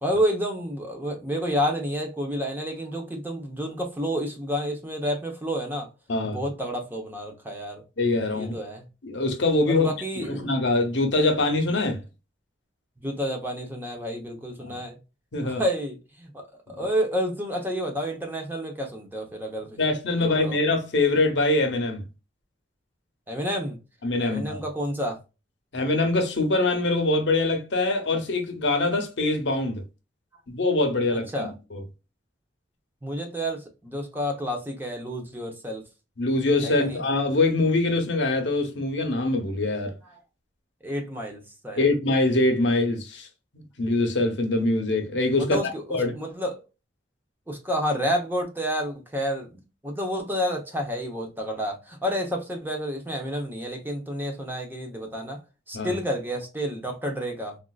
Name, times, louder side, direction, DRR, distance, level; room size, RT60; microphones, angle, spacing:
voice 1, 0.0-5.9 6.2-7.8 8.3-8.9 9.7-10.5 13.0-15.0 15.4-19.8 20.2-20.6 23.3-23.8 24.2-25.2 31.3-31.5 33.0-35.8 36.6-37.0 40.8-41.9 45.4-46.6 47.5-55.4 55.7-57.6, equal, 10° right, 0.7 m, -30 dB
voice 2, 8.0-8.6 9.0-12.0 14.6-14.8 15.3-15.6 19.8-22.0 24.0-24.6 25.7-29.8 30.5-31.8 36.2-39.9 41.7-43.3 43.5-45.6 45.9-46.1 55.7-55.9, left 2 dB, 75° left, 0.8 m, -24 dB
3.5 x 2.5 x 2.2 m
head